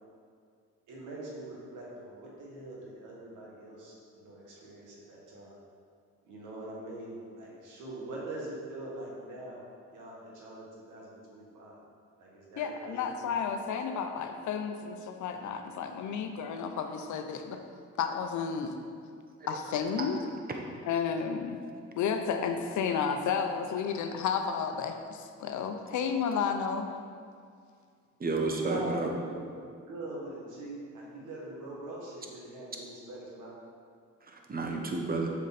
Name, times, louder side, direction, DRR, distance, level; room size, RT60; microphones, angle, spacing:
voice 1, 0.9-5.6 6.2-9.6 9.9-11.8 12.2-13.4 28.4-33.5, right 1 dB, 85° right, -4 dB, 1.9 m, -43 dB
voice 2, 12.6-17.6 18.0-18.7 19.5-20.2 20.8-21.6 22.0-26.9, left 6 dB, 75° left, 5 dB, 0.8 m, -32 dB
voice 3, 28.2-29.1 34.3-35.3, right 3 dB, 30° right, 2 dB, 1.0 m, -31 dB
7.3 x 5.4 x 4.2 m, 2.2 s
cardioid pair, 90°, 30 cm